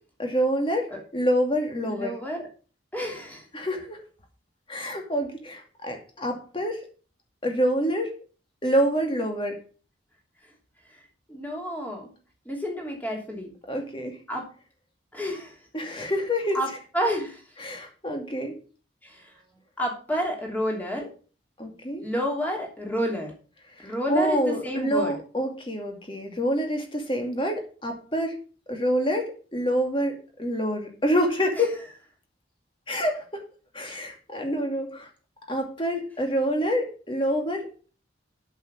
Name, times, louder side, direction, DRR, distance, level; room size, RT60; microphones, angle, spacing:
voice 1, 0.2-2.2 3.5-4.0 4.7-6.8 7.4-8.1 8.6-9.6 13.7-14.2 15.7-16.6 17.6-18.5 21.6-22.0 23.8-28.3 28.7-31.8 32.9-33.5 33.7-35.1 35.5-37.9, equal, 25° left, 3 dB, 2.3 m, -27 dB
voice 2, 1.8-2.5 2.9-3.5 10.9-11.0 11.3-12.1 12.4-13.5 14.3-14.5 15.1-15.6 16.0-16.1 16.5-16.7 16.9-17.4 19.0-19.4 19.8-21.1 22.0-23.3 23.8-25.1 31.6-31.7, equal, 10° left, 0 dB, 3.0 m, -30 dB
8.3 x 7.3 x 6.2 m, 0.38 s
head